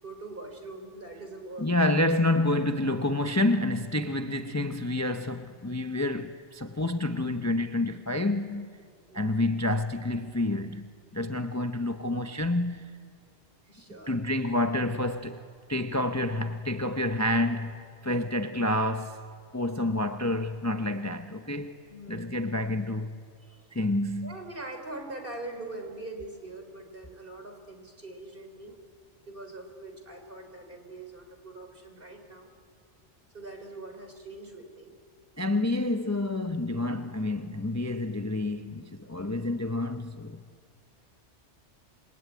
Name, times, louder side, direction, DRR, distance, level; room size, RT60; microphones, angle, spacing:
voice 1, 0.0-1.7 9.1-9.5 13.6-14.1 21.9-22.6 23.4-23.6 24.2-28.8 29.3-32.5 33.3-34.9, right 2 dB, 50° right, 4.2 m, -43 dB
voice 2, 1.6-8.7 9.1-13.0 14.1-15.4 15.7-19.2 19.5-21.8 22.1-23.1 23.7-24.4 35.4-40.4, left 1 dB, 15° left, 0.8 m, -28 dB
26.5 x 23.5 x 9.5 m
omnidirectional pair, 1.2 m